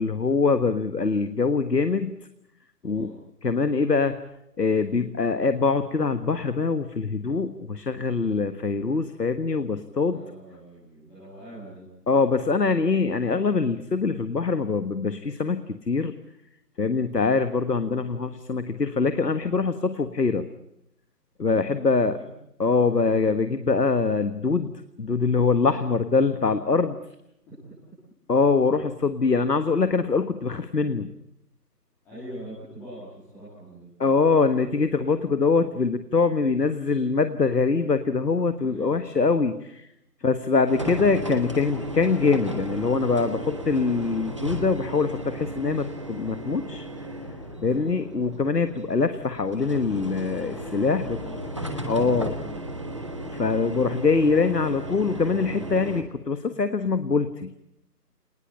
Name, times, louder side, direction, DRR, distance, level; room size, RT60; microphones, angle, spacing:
voice 1, 0.0-2.2 2.8-3.1 3.4-4.1 4.6-10.2 12.1-16.1 16.8-20.4 21.4-22.2 22.6-24.7 25.0-27.0 28.3-31.1 34.0-39.9 40.2-46.9 47.6-51.2 51.9-52.3 53.3-57.5, left 4 dB, 80° left, 11 dB, 1.6 m, -23 dB
voice 2, 2.8-3.2 10.1-11.8 21.8-22.3 32.0-34.4 38.6-39.0 40.2-40.3 47.6-48.1 51.2-51.4 51.8-52.6 52.8-53.0, right 1 dB, 5° left, -13 dB, 2.6 m, -44 dB
sound 1, 40.7-56.0, right 1 dB, 20° right, 1.3 m, -35 dB
25.5 x 20.0 x 8.7 m, 0.80 s
figure-of-eight pair, 170°, 48 cm